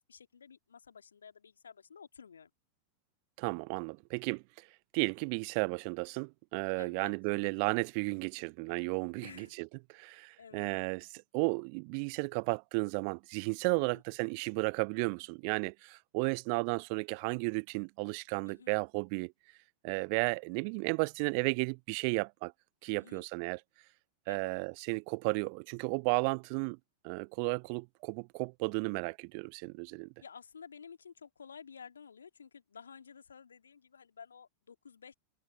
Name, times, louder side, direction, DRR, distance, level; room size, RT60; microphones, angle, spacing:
voice 1, 0.1-2.5 6.8-7.1 9.2-9.6 10.4-10.7 13.8-14.0 18.5-18.8 22.9-23.2 24.3-24.6 30.2-35.1, left 6 dB, 70° left, 2.2 m, -52 dB
voice 2, 3.4-4.7 4.9-9.7 9.9-11.1 11.3-19.3 19.8-22.5 22.8-23.6 24.3-26.8 27.0-30.1, right 40 dB or more, 45° right, 0.5 m, -33 dB
figure-of-eight pair, 90°, 0 cm